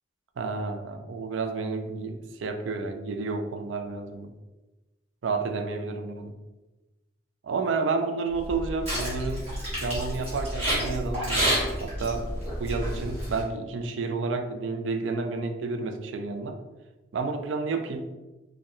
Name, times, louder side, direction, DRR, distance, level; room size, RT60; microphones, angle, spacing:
voice 1, 0.4-4.3 5.2-6.3 7.4-12.3 12.6-16.6 17.1-18.1, right 4 dB, 80° right, 6 dB, 0.4 m, -31 dB
sound 1, 8.4-13.4, equal, 30° right, 1.4 m, -29 dB
4.5 x 2.1 x 3.0 m, 1.1 s
head